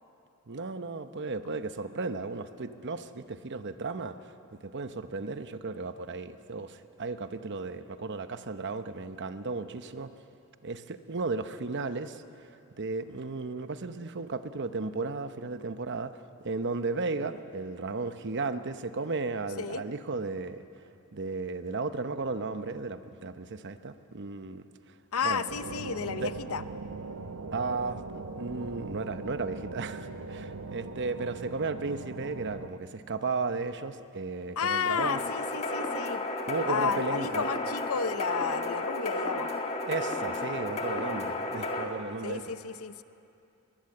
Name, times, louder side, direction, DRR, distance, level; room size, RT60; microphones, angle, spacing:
voice 1, 0.5-10.1 10.6-20.6 21.1-24.7 25.2-25.4 26.2-26.3 27.5-35.2 36.5-37.4 39.9-42.4, right 3 dB, 50° right, 10 dB, 0.8 m, -35 dB
voice 2, 25.1-26.6 34.6-36.2 36.7-39.5 42.2-43.0, left 6 dB, 70° left, 13 dB, 0.7 m, -32 dB
sound 1, 25.5-32.7, right 3 dB, 85° right, 1.0 m, -40 dB
sound 2, 35.0-41.8, left 2 dB, 30° left, 1.8 m, -32 dB
22.5 x 19.5 x 7.8 m, 2.7 s
head